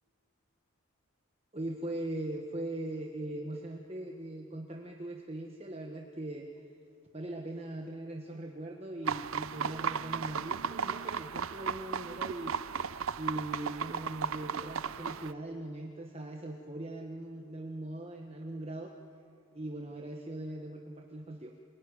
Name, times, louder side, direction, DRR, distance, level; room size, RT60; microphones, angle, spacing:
voice 1, 1.5-6.5 7.1-12.6 13.2-18.9 19.5-21.5, right 1 dB, 30° right, 2 dB, 1.2 m, -40 dB
sound 1, 9.1-15.3, right 6 dB, 75° right, 0.6 m, -35 dB
26.5 x 18.0 x 9.9 m, 2.6 s
head